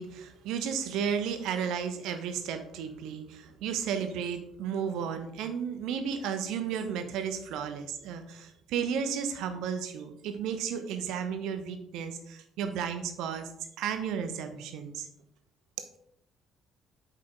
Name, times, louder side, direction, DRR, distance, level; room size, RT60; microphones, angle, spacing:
voice 1, 0.0-13.5 13.8-15.1, right 7 dB, 60° right, 8 dB, 1.1 m, -33 dB
8.6 x 6.6 x 3.8 m, 0.71 s
figure-of-eight pair, 45°, 0 cm